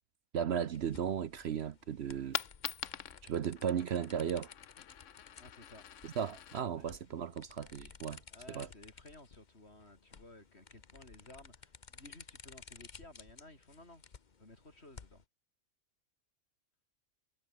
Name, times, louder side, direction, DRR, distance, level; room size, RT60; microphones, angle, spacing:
voice 1, 0.3-2.4 3.2-4.5 6.0-8.2 8.5-8.7, right 8 dB, 60° right, 1.0 m, -35 dB
sound 1, 0.7-15.2, left 5 dB, 40° left, 1.1 m, -56 dB
Coin (dropping), 2.0-8.0, left 10 dB, 75° left, 1.2 m, -45 dB
voice 2, 5.4-5.8 6.7-6.9 8.3-14.0 14.4-15.2, left 1 dB, 55° left, 6.1 m, -56 dB
omnidirectional pair, 1.3 m